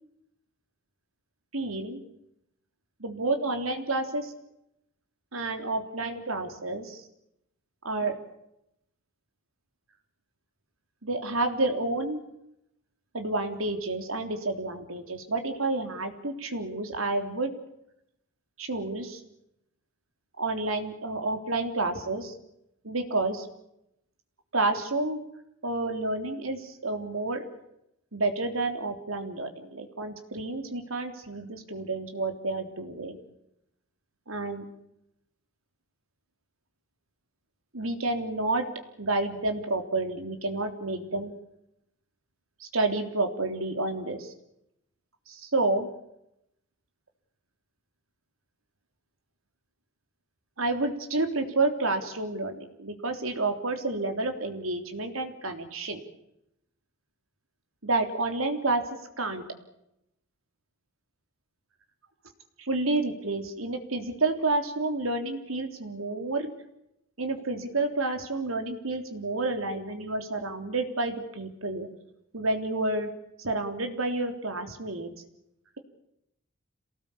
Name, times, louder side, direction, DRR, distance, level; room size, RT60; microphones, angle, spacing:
voice 1, 1.5-2.0 3.0-4.3 5.3-7.0 7.8-8.2 11.0-12.2 13.1-17.5 18.6-19.2 20.4-22.3 22.8-23.5 24.5-25.2 25.6-27.4 28.1-33.2 34.3-34.6 37.7-38.7 39.0-41.3 42.6-44.3 45.3-45.9 50.6-56.0 57.8-58.8 59.2-59.4 62.6-66.5 67.2-71.9 72.3-73.1 73.4-75.1, right 2 dB, 85° right, 6 dB, 3.5 m, -29 dB
27.0 x 19.0 x 8.7 m, 0.82 s
head